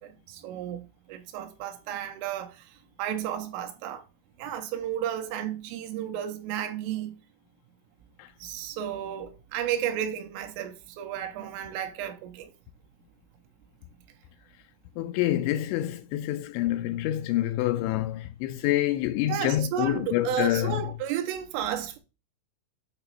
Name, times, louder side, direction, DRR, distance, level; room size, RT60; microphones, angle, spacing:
voice 1, 0.0-4.1 4.4-7.1 8.4-12.5 19.3-22.0, right 10 dB, 85° right, 3.2 m, -33 dB
voice 2, 15.0-20.8, left 14 dB, 90° left, 2.6 m, -27 dB
8.8 x 3.0 x 5.4 m
omnidirectional pair, 5.8 m